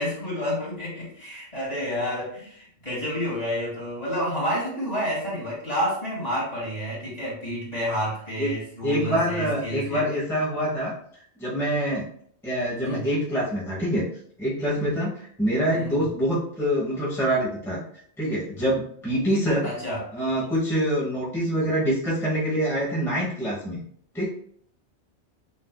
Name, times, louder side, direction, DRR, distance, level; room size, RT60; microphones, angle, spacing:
voice 1, 0.0-10.1 12.8-13.1 15.7-16.0 19.6-20.0, equal, 35° left, -6 dB, 2.0 m, -29 dB
voice 2, 8.8-10.9 11.4-12.0 12.4-14.0 14.4-17.8 18.2-19.7 20.1-23.8 24.1-24.3, equal, ahead, -7 dB, 1.0 m, -25 dB
6.4 x 2.7 x 2.3 m, 0.63 s
omnidirectional pair, 1.2 m